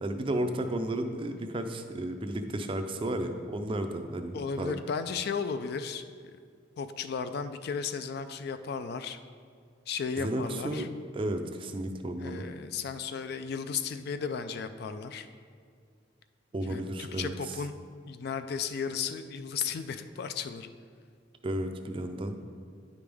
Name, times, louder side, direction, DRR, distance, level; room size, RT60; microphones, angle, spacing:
voice 1, 0.0-4.8 10.2-10.9 11.1-12.4 16.5-17.3 21.4-22.4, right 1 dB, 25° right, 7 dB, 0.4 m, -33 dB
voice 2, 4.3-6.4 6.8-9.2 9.9-10.9 12.2-15.3 16.7-17.8 18.1-20.7, left 6 dB, 55° left, 10 dB, 0.3 m, -35 dB
9.4 x 5.1 x 3.4 m, 2.2 s
head